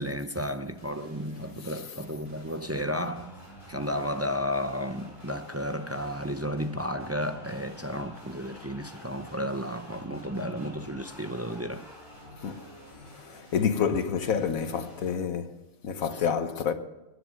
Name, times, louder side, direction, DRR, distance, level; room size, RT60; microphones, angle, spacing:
voice 1, 0.0-3.4 3.7-11.9 16.2-16.3, equal, 25° right, 0.3 m, -33 dB
sound 1, 0.8-15.1, left 1 dB, 25° left, 5.5 m, -50 dB
sound 2, 2.6-13.6, equal, ahead, 6.3 m, -51 dB
voice 2, 13.1-16.7, left 7 dB, 85° left, 1.6 m, -28 dB
21.0 x 10.0 x 6.6 m
omnidirectional pair, 1.4 m